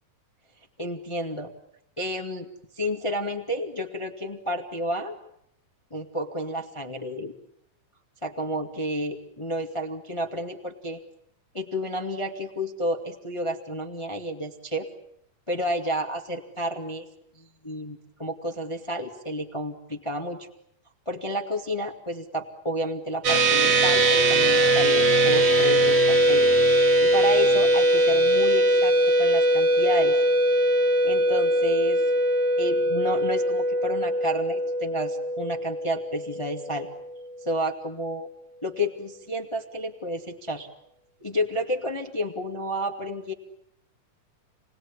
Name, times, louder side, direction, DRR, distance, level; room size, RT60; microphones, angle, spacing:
voice 1, 0.8-1.5 2.0-2.5 2.7-5.2 5.9-7.3 8.2-11.0 11.5-14.9 15.5-17.1 17.3-20.5 21.0-30.1 31.0-32.0 32.6-36.9 37.4-38.3 38.6-40.7 41.2-43.3, equal, 15° left, 4 dB, 1.3 m, -31 dB
sound 1, 23.2-36.9, right 1 dB, 50° right, 2.9 m, -21 dB
29.5 x 20.0 x 9.9 m, 0.74 s
omnidirectional pair, 3.8 m